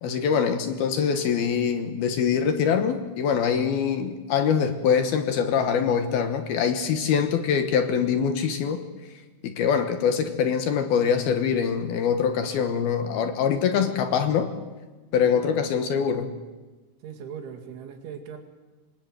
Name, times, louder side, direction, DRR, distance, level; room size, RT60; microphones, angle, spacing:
voice 1, 0.0-8.8 9.4-14.5 15.1-16.3, left 7 dB, 65° left, 8 dB, 2.8 m, -24 dB
voice 2, 17.0-18.4, right 7 dB, 80° right, 6 dB, 4.6 m, -39 dB
26.0 x 21.0 x 9.2 m, 1.2 s
omnidirectional pair, 5.4 m